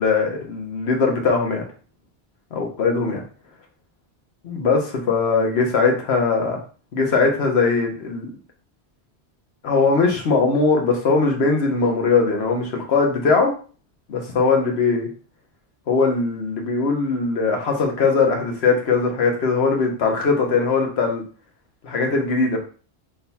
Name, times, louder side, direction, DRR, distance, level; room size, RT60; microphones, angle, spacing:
voice 1, 0.0-1.6 2.5-3.2 4.4-6.6 6.9-8.3 9.6-13.5 14.1-15.1 15.9-21.2 21.8-22.6, left 4 dB, 70° left, 2 dB, 1.2 m, -20 dB
3.9 x 2.3 x 4.1 m, 0.39 s
omnidirectional pair, 1.1 m